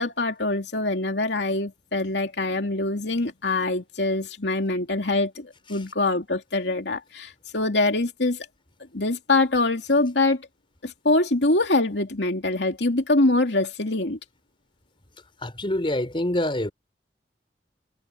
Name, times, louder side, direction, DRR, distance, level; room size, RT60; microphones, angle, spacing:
voice 1, 0.0-8.5 8.9-10.4 10.8-14.2, left 2 dB, 80° left, 2.7 m, -24 dB
voice 2, 15.4-16.7, left 1 dB, 30° left, 3.9 m, -25 dB
head